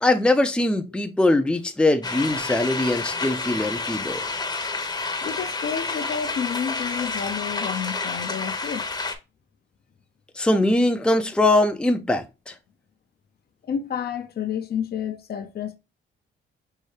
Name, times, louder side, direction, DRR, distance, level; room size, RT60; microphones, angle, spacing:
voice 1, 0.0-4.2 10.4-12.5, left 2 dB, 5° left, 0.6 m, -21 dB
sound 1, 2.0-9.2, left 3 dB, 20° left, 0.9 m, -29 dB
voice 2, 5.2-8.9 13.6-15.8, left 8 dB, 55° left, 0.7 m, -30 dB
5.6 x 2.7 x 3.2 m
cardioid pair, 90°, 20 cm